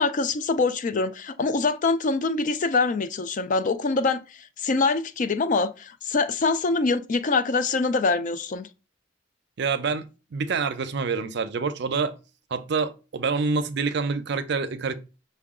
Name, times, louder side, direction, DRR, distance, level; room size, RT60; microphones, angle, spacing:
voice 1, 0.0-4.2 4.6-8.7, left 3 dB, 45° left, 0.4 m, -24 dB
voice 2, 9.6-12.2 12.5-14.9, right 4 dB, 65° right, 0.5 m, -27 dB
5.6 x 2.2 x 3.6 m
head